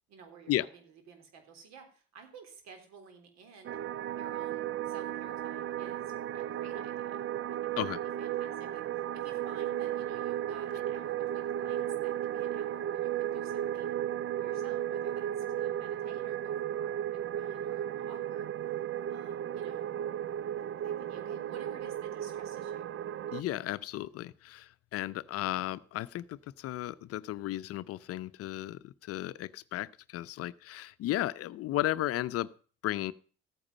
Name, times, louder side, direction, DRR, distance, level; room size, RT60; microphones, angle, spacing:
voice 1, 0.1-3.8 4.1-7.2 7.5-14.0 14.4-18.5 19.1-19.9 20.6-22.8 30.2-30.4, right 5 dB, 65° right, 6 dB, 3.6 m, -53 dB
sound 1, 3.6-23.4, right 11 dB, 45° right, 0.6 m, -35 dB
voice 2, 23.3-32.5 32.8-33.1, left 14 dB, 55° left, 16 dB, 0.6 m, -34 dB
14.5 x 8.8 x 5.4 m, 0.40 s
hypercardioid pair, 70°, 29 cm